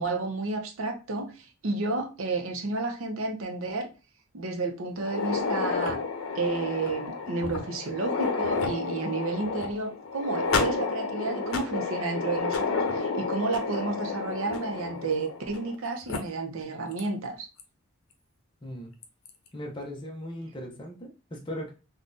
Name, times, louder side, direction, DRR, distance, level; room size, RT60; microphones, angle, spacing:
voice 1, 0.0-3.9 4.3-6.0 6.3-17.5, right 3 dB, 80° right, 0.7 m, -31 dB
sound 1, 5.0-15.7 16.1-16.2 17.0-17.1 17.6-17.7 19.0-19.3, left 4 dB, 85° left, 0.6 m, -31 dB
voice 2, 18.6-18.9 19.5-21.7, equal, 25° left, 0.6 m, -38 dB
3.6 x 2.3 x 2.5 m
head